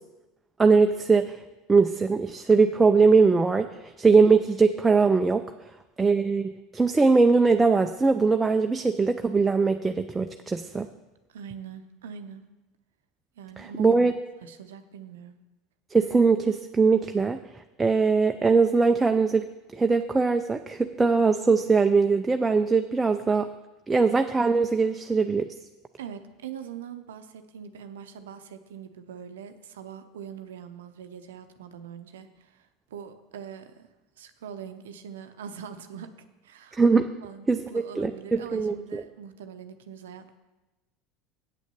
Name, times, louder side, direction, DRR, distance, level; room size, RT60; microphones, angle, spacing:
voice 1, 0.6-1.4 1.7-5.5 6.0-10.9 13.6-14.1 15.9-17.4 17.8-23.5 23.9-25.5 36.8-37.1 37.5-37.6 38.0-39.0, right 4 dB, 15° right, 6 dB, 0.5 m, -21 dB
voice 2, 11.3-12.4 13.4-13.9 14.4-15.4 26.0-33.9 34.2-36.1 36.4-40.4, right 7 dB, 80° right, 8 dB, 0.6 m, -42 dB
8.5 x 6.2 x 6.9 m, 1.1 s
hypercardioid pair, 80°, 0 cm